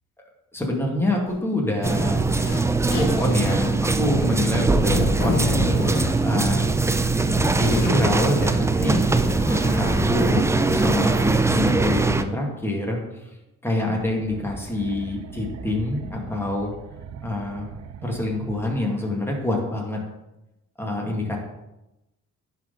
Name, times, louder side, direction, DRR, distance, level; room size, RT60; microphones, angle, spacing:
voice 1, 0.5-2.5 2.8-5.7 6.2-6.7 7.6-9.1 9.5-13.2 13.6-16.7 17.2-17.7 18.0-20.0 20.8-21.4, left 2 dB, 10° left, -1 dB, 1.9 m, -26 dB
Zipper (clothing), 1.3-1.4 2.2-2.6 2.9-3.7 4.4-6.2 6.9-7.9 8.9-10.4, left 2 dB, 65° left, 2.1 m, -29 dB
sound 1, 1.8-12.2, right 3 dB, 10° right, 0.4 m, -21 dB
sound 2, 13.9-19.2, right 7 dB, 60° right, 0.6 m, -40 dB
10.5 x 4.2 x 3.9 m, 0.94 s
cardioid pair, 90°, 30 cm